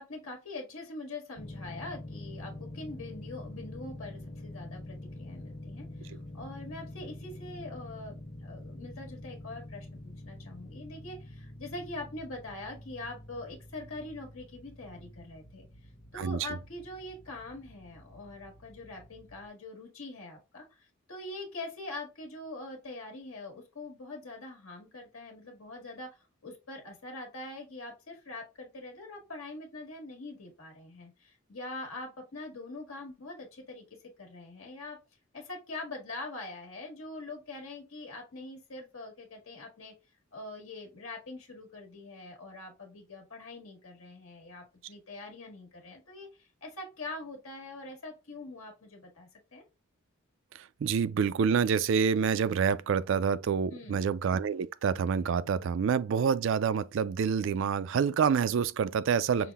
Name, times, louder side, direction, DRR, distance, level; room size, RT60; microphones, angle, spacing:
voice 1, 0.0-8.1 8.4-15.7 16.1-35.0 35.3-39.9 40.3-49.6 53.7-54.0 59.3-59.5, left 2 dB, 80° left, 1.4 m, -43 dB
sound 1, 1.4-19.5, left 1 dB, 40° left, 1.0 m, -46 dB
voice 2, 16.1-16.5 50.8-59.5, right 6 dB, 60° right, 0.3 m, -27 dB
5.7 x 2.1 x 3.4 m
head